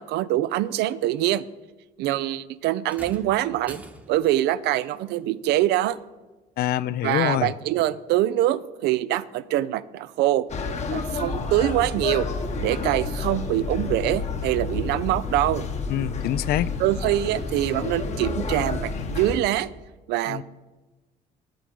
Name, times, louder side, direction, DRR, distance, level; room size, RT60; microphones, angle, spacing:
voice 1, 0.0-1.4 2.0-3.8 4.1-6.0 7.0-10.4 10.9-12.3 12.6-15.7 16.8-19.7 20.1-20.4, right 14 dB, 80° right, 17 dB, 0.4 m, -24 dB
sound 1, 2.8-4.4 5.9-6.0 6.9-7.0, right 1 dB, 10° right, 0.9 m, -44 dB
voice 2, 6.6-7.5 15.9-16.7 20.3-20.4, left 12 dB, 65° left, 17 dB, 0.4 m, -25 dB
sound 2, 10.5-19.4, left 4 dB, 40° left, 1.0 m, -30 dB
8.5 x 7.7 x 5.3 m, 1.2 s
cardioid pair, 110°, 17 cm